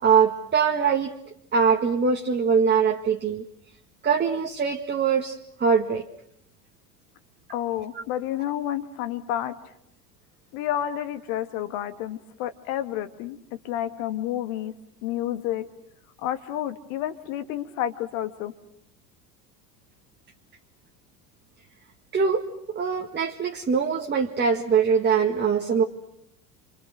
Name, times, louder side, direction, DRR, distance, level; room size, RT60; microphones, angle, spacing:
voice 1, 0.0-1.1 1.5-3.4 4.0-6.0 22.1-22.4 22.7-25.8, right 6 dB, 20° right, 2 dB, 1.9 m, -22 dB
voice 2, 7.5-9.5 10.5-13.4 13.6-14.7 15.0-15.6 16.2-18.5, left 11 dB, 55° left, 10 dB, 2.1 m, -30 dB
29.5 x 25.5 x 6.5 m, 0.74 s
figure-of-eight pair, 80°, 49 cm